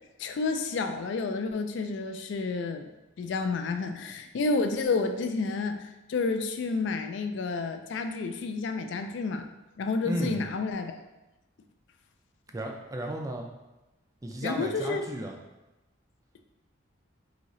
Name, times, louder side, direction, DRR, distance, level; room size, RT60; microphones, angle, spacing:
voice 1, 0.2-2.9 3.2-9.5 9.8-11.0 14.4-15.0, left 4 dB, 60° left, 7 dB, 0.3 m, -30 dB
voice 2, 10.0-10.4 12.5-13.5 14.2-15.4, right 1 dB, 15° right, 2 dB, 0.3 m, -34 dB
3.9 x 2.7 x 3.0 m, 1.0 s
head